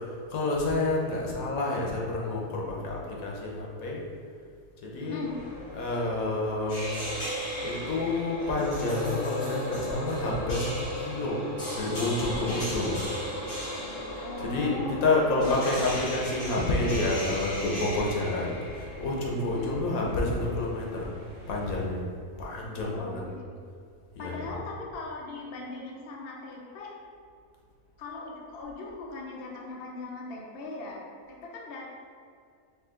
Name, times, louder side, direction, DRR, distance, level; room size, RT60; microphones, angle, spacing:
voice 1, 0.3-4.0 4.8-5.3 5.7-7.0 7.6-11.4 11.7-12.9 14.5-14.8 15.0-21.1 21.5-22.0 22.4-23.2 24.1-24.5, left 2 dB, 80° left, -2 dB, 1.3 m, -29 dB
voice 2, 5.0-5.3 14.2-14.9 15.3-15.8 18.4-18.5 19.5-19.8 22.6-23.5 24.2-26.9 28.0-31.9, left 3 dB, 50° left, -2 dB, 0.8 m, -39 dB
sound 1, 5.2-21.9, equal, 25° left, 1.1 m, -36 dB
5.4 x 2.4 x 3.7 m, 2.2 s
omnidirectional pair, 1.5 m